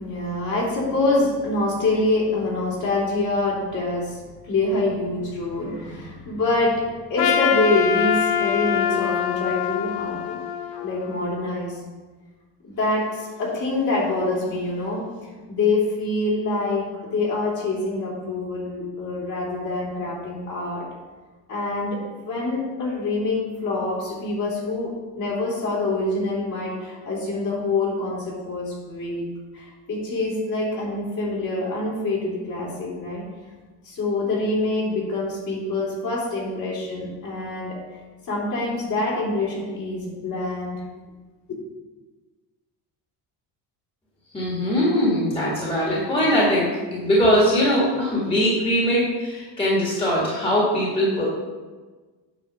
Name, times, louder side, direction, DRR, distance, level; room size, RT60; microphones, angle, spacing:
voice 1, 0.0-10.4 10.8-11.8 12.6-15.0 15.5-20.8 21.5-22.0 22.2-24.9 25.2-29.3 29.5-33.2 33.8-37.8 38.3-40.8, left 2 dB, 45° left, -4 dB, 3.1 m, -25 dB
Trumpet, 7.2-11.5, left 8 dB, 85° left, 0.9 m, -24 dB
voice 2, 44.3-51.2, equal, 15° left, -6 dB, 2.0 m, -21 dB
8.9 x 4.5 x 6.6 m, 1.3 s
cardioid pair, 155°, 42 cm